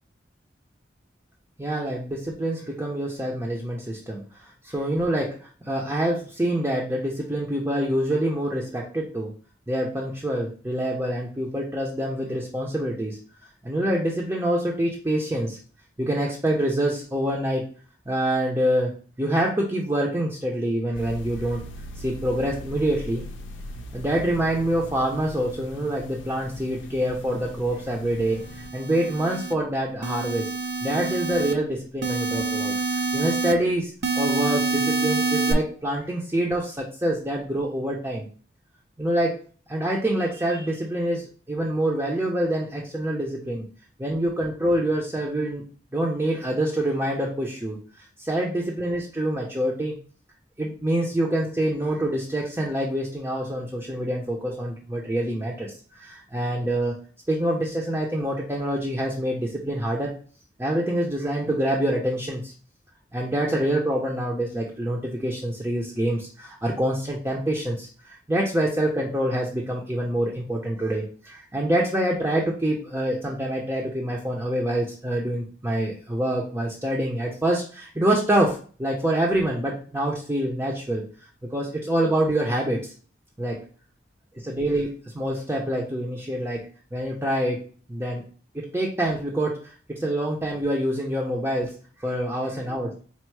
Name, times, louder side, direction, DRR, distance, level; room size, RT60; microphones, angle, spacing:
voice 1, 1.6-9.3 9.7-13.2 13.6-15.6 16.0-17.6 18.1-21.6 22.0-23.2 23.9-28.4 28.7-30.5 30.8-38.3 39.0-39.4 39.7-43.7 44.0-45.7 45.9-50.0 50.6-57.0 57.3-60.1 60.6-62.5 63.1-81.0 81.5-82.9 83.4-83.6 84.4-87.6 87.9-88.2 88.5-93.1, right 1 dB, 15° right, -2 dB, 0.5 m, -26 dB
sound 1, 20.9-28.7, equal, 90° left, 0.5 m, -40 dB
sound 2, 28.4-29.5 30.0-31.5 32.0-33.5 34.0-35.5, right 3 dB, 60° right, 0.5 m, -26 dB
4.2 x 2.0 x 4.5 m, 0.41 s
head